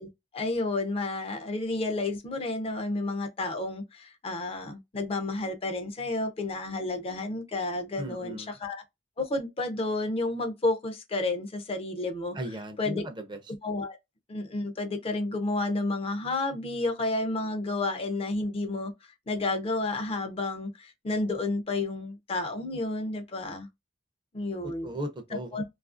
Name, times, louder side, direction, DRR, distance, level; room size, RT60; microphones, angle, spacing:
voice 1, 0.0-8.8 9.2-12.4 12.8-13.0 13.6-14.0 14.3-23.7 24.3-25.0 25.5-25.6, left 2 dB, 30° left, 0.4 m, -31 dB
voice 2, 8.0-8.5 12.3-13.4 24.6-25.6, right 1 dB, 25° right, 0.5 m, -37 dB
2.7 x 2.4 x 2.4 m
head